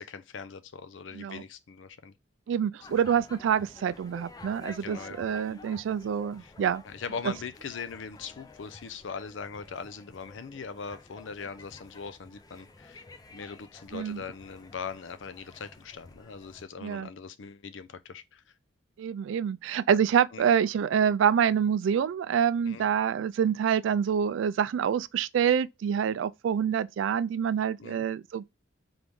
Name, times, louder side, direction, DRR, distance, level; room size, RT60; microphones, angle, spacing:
voice 1, 0.0-2.1 4.8-5.2 6.4-6.5 6.8-13.0 13.3-18.4 20.3-20.5 22.7-22.9 27.8-28.0, left 5 dB, 75° left, 0.5 m, -41 dB
voice 2, 2.5-6.8 13.9-14.2 16.8-17.1 19.0-28.4, right 8 dB, 80° right, 0.3 m, -26 dB
sound 1, 2.8-16.6, left 2 dB, 20° left, 0.3 m, -51 dB
3.9 x 3.1 x 3.4 m
head